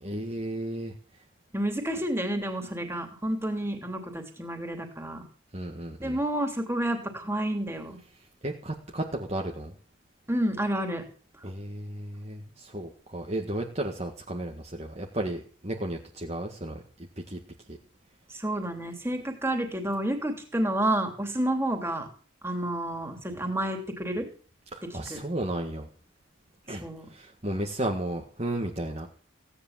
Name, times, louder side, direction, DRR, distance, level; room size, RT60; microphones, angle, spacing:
voice 1, 0.0-0.9 5.5-6.2 8.4-9.7 11.4-16.8 17.3-17.4 17.7-17.8 24.7-25.9 26.7-26.8 27.1-29.1, right 1 dB, 30° right, 1 dB, 1.8 m, -33 dB
voice 2, 1.5-5.2 6.0-8.0 10.3-11.0 18.3-22.1 22.4-24.3 25.1-25.2 26.8-27.1, right 1 dB, 10° right, 4 dB, 3.1 m, -30 dB
16.5 x 10.0 x 7.5 m, 0.40 s
head